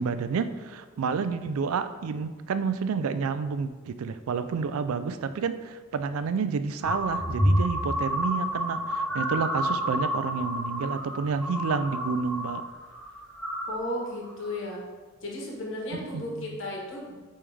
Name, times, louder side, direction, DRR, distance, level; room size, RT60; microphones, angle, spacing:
voice 1, 0.0-12.6 15.9-16.2, right 5 dB, 85° right, 12 dB, 0.4 m, -30 dB
sound 1, 6.8-12.6 12.9-13.8 14.3-14.6, equal, 5° left, 0.4 m, -29 dB
voice 2, 13.7-14.8 15.2-17.2, left 1 dB, 60° left, -2 dB, 1.4 m, -34 dB
8.5 x 3.2 x 3.5 m, 1.4 s
head